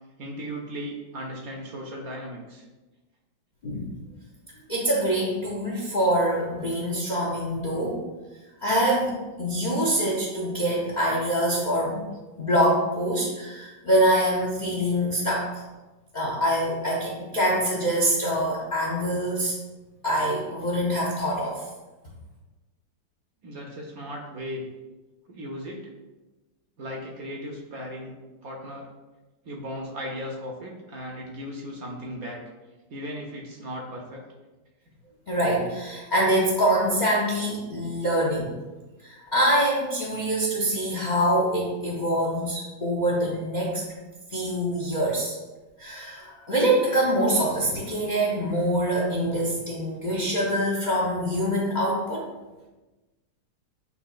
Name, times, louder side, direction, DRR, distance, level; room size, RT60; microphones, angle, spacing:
voice 1, 0.2-2.7 23.4-24.6 25.3-25.9 26.8-28.1 28.4-28.9 29.4-32.4 32.9-34.2, equal, 65° right, 0 dB, 1.0 m, -36 dB
voice 2, 4.7-8.0 8.6-12.0 12.4-15.6 16.1-19.5 20.0-21.6 35.3-38.5 39.0-43.8 44.3-45.3 45.8-52.2, right 1 dB, 50° left, -6 dB, 0.5 m, -25 dB
8.2 x 2.8 x 2.4 m, 1.2 s
omnidirectional pair, 1.9 m